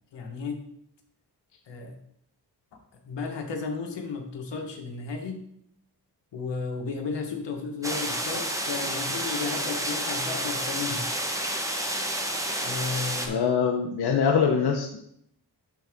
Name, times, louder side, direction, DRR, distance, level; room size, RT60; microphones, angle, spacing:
voice 1, 0.1-0.6 1.7-2.0 2.9-5.4 6.3-11.1 12.6-13.4, left 4 dB, 80° left, 3 dB, 1.4 m, -34 dB
sound 1, 7.8-13.3, right 1 dB, 5° right, 1.1 m, -30 dB
voice 2, 13.2-15.0, left 6 dB, 65° left, 2 dB, 0.9 m, -23 dB
11.5 x 3.8 x 3.6 m, 0.71 s
cardioid pair, 80°, 42 cm